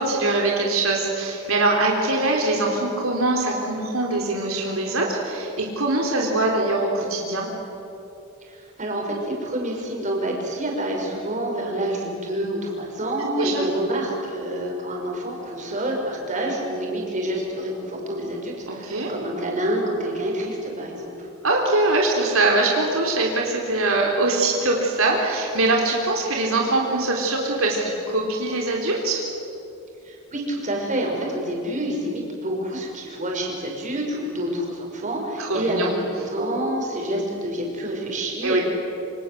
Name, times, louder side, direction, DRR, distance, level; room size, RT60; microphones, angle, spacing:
voice 1, 0.0-7.5 13.2-13.7 18.7-19.1 21.4-29.2 35.4-36.0 38.4-38.6, right 2 dB, 75° right, -1 dB, 3.8 m, -22 dB
voice 2, 8.4-21.3 30.0-38.6, right 1 dB, 35° right, 0 dB, 6.2 m, -27 dB
28.0 x 26.5 x 8.0 m, 2.9 s
head